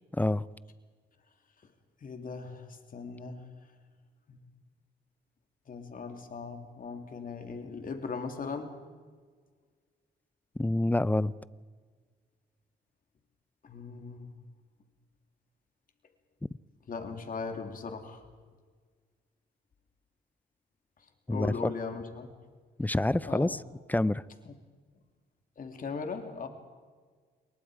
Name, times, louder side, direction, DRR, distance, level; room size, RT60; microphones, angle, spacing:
voice 1, 0.1-0.5 10.6-11.3 21.3-21.7 22.8-23.6 23.9-24.2, left 1 dB, 10° left, 18 dB, 0.6 m, -27 dB
voice 2, 2.0-3.7 4.3-4.4 5.7-8.8 13.6-14.4 16.9-18.2 21.3-22.3 23.2-23.6 24.4-24.5 25.6-26.5, left 5 dB, 50° left, 5 dB, 2.9 m, -39 dB
28.0 x 23.0 x 5.0 m, 1.5 s
cardioid pair, 95°, 18 cm